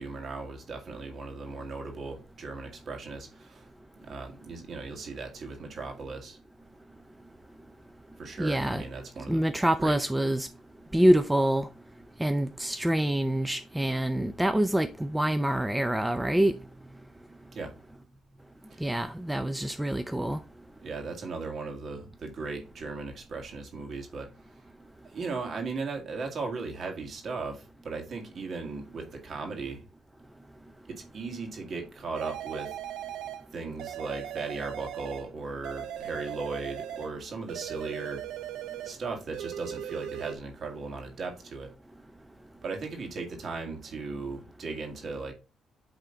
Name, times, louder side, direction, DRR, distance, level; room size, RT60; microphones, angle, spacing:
voice 1, 0.0-3.7 4.0-6.4 8.2-9.4 9.8-10.0 17.5-17.7 18.7-18.8 20.8-24.3 25.1-29.8 30.9-32.8 33.5-38.2 38.8-41.7 42.6-45.3, right 4 dB, 55° right, 2.0 m, -37 dB
voice 2, 8.4-8.8 9.3-10.5 10.9-11.7 12.2-16.6 18.8-20.4, right 1 dB, 10° right, 0.5 m, -26 dB
sound 1, 32.1-33.5 33.8-35.3 35.6-37.2 37.5-39.0 39.3-40.3, right 10 dB, 85° right, 0.6 m, -38 dB
9.2 x 3.6 x 3.9 m
cardioid pair, 90°, 0 cm